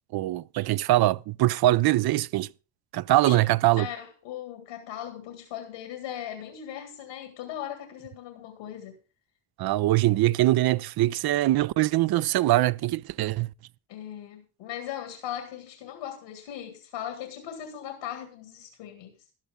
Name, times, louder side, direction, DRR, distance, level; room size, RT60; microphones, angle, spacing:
voice 1, 0.1-2.5 2.9-3.9 9.6-13.5, right 16 dB, 60° right, 0.5 m, -23 dB
voice 2, 3.8-8.9 13.9-19.1, left 10 dB, 90° left, 2.2 m, -38 dB
13.5 x 11.5 x 3.6 m
supercardioid pair, 75°, 45 cm